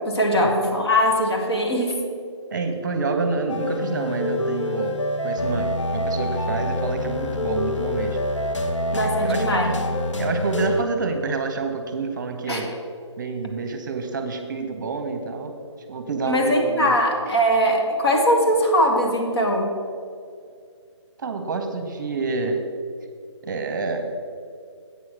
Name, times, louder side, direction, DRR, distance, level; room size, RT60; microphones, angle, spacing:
voice 1, 0.0-2.0 8.9-9.8 12.5-12.6 16.2-19.7, equal, 55° left, 1 dB, 1.9 m, -21 dB
voice 2, 2.5-8.2 9.0-9.8 10.2-12.7 13.2-15.5 15.9-16.9 21.2-22.6 23.4-24.1, right 4 dB, 40° right, 5 dB, 0.9 m, -28 dB
sound 1, 3.5-10.8, left 1 dB, 75° left, 1.0 m, -26 dB
8.4 x 6.3 x 5.9 m, 2.3 s
figure-of-eight pair, 160°, 16 cm